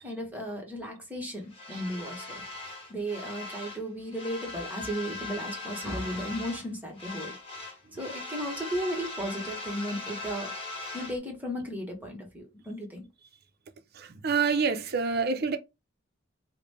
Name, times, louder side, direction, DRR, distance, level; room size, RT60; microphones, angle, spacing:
voice 1, 0.0-2.4 2.9-7.4 7.9-10.5 10.9-13.1, equal, 10° right, 1.1 m, -35 dB
sound 1, 1.5-3.8 4.1-6.7 7.0-11.2, left 3 dB, 30° left, 1.3 m, -40 dB
voice 2, 13.9-15.6, right 5 dB, 55° right, 0.6 m, -27 dB
4.8 x 2.1 x 3.3 m
head